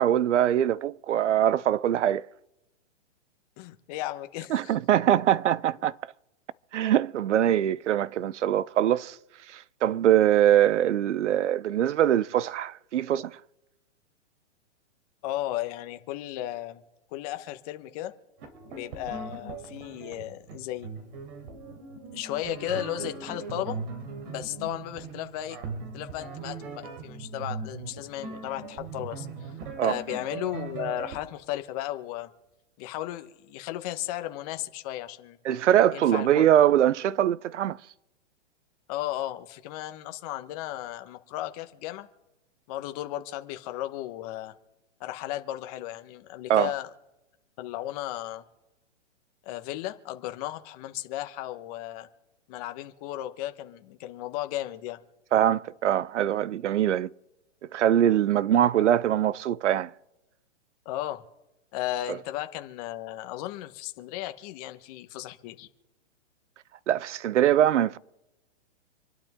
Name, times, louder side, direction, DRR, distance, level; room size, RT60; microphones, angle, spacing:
voice 1, 0.0-2.3 4.5-5.9 6.7-9.2 9.5-13.4 29.8-30.0 35.5-37.8 46.5-46.7 55.3-57.1 57.7-59.9 66.9-68.0, right 11 dB, 75° right, 0.7 m, -23 dB
voice 2, 3.6-4.7 15.2-16.8 17.1-18.1 18.7-20.9 22.1-23.8 24.3-25.6 25.9-29.5 29.8-32.3 32.8-35.4 35.9-36.5 38.9-42.1 42.7-44.5 45.0-46.9 47.6-48.4 49.4-52.1 52.5-55.0 58.6-58.9 60.8-61.2 61.7-65.7, left 14 dB, 30° left, 1.2 m, -35 dB
sound 1, 18.4-31.2, right 4 dB, 45° right, 3.7 m, -39 dB
27.0 x 11.5 x 3.7 m
hypercardioid pair, 150°, 36 cm